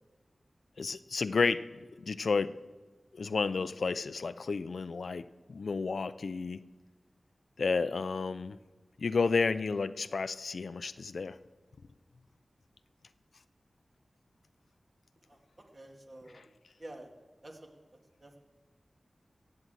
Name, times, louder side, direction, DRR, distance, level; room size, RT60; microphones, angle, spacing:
voice 1, 0.8-1.7 2.0-2.5 3.1-6.6 7.6-8.6 9.0-11.4 16.3-16.5, left 4 dB, 80° left, 15 dB, 0.4 m, -31 dB
voice 2, 15.7-16.4 16.8-17.1 17.4-17.7 18.2-18.4, right 1 dB, 45° right, 2 dB, 2.2 m, -48 dB
16.0 x 8.6 x 7.6 m, 1.3 s
wide cardioid pair, 65°, 0 cm